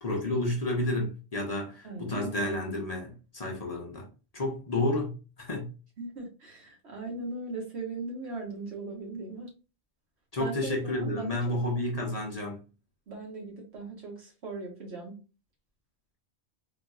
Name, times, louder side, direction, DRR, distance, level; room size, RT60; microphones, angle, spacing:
voice 1, 0.0-4.1 4.3-5.7 10.3-12.6, left 1 dB, 40° left, 0.8 m, -31 dB
voice 2, 1.8-2.5 6.0-9.5 10.4-11.6 13.1-15.1, right 3 dB, 80° right, 1.5 m, -39 dB
3.9 x 2.6 x 2.3 m
omnidirectional pair, 1.1 m